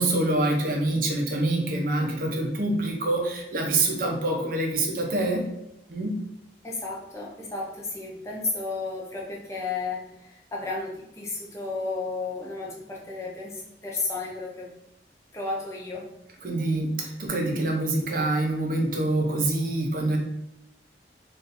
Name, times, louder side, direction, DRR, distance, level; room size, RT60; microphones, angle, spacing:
voice 1, 0.0-5.4 5.9-6.1 16.4-20.2, right 2 dB, 50° right, 2 dB, 0.6 m, -25 dB
voice 2, 6.6-14.7 15.3-16.1, left 3 dB, 15° left, -4 dB, 0.6 m, -33 dB
2.5 x 2.4 x 4.0 m, 0.86 s
head